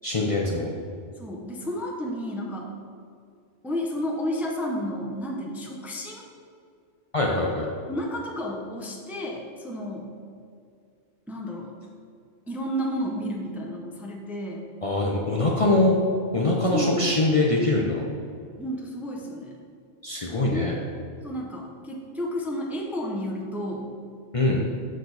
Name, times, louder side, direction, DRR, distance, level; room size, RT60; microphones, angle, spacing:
voice 1, 0.0-0.7 7.1-7.7 14.8-16.0 16.3-18.0 20.0-20.7 24.3-24.6, left 2 dB, 35° left, -2 dB, 0.7 m, -23 dB
voice 2, 1.2-2.7 3.6-6.2 7.9-10.1 11.3-11.7 12.5-14.6 16.7-17.1 18.6-19.6 20.4-20.8 21.2-23.9, equal, ahead, -1 dB, 0.6 m, -32 dB
6.7 x 6.2 x 4.0 m, 2.3 s
omnidirectional pair, 1.1 m